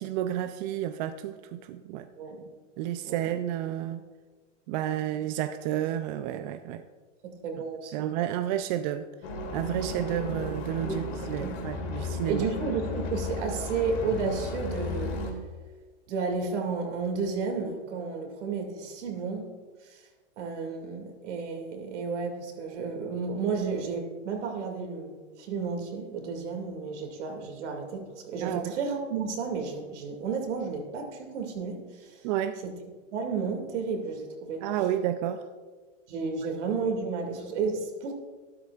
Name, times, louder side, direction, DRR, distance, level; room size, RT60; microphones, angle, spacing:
voice 1, 0.0-2.1 2.8-4.0 4.7-6.8 7.9-9.1 9.5-12.4 28.4-28.7 32.2-32.6 34.6-35.4, right 11 dB, 40° right, 9 dB, 0.5 m, -31 dB
voice 2, 2.2-2.5 3.0-3.3 7.2-8.1 10.8-11.0 11.4-11.6 12.3-15.2 16.1-19.5 19.8-20.0 20.4-32.2 32.6-32.8 33.1-34.7 36.1-38.1, right 4 dB, 70° right, 3 dB, 2.5 m, -32 dB
sound 1, 9.2-15.3, left 2 dB, 55° left, 2.3 m, -34 dB
12.5 x 12.0 x 2.5 m, 1.4 s
hypercardioid pair, 125°, 37 cm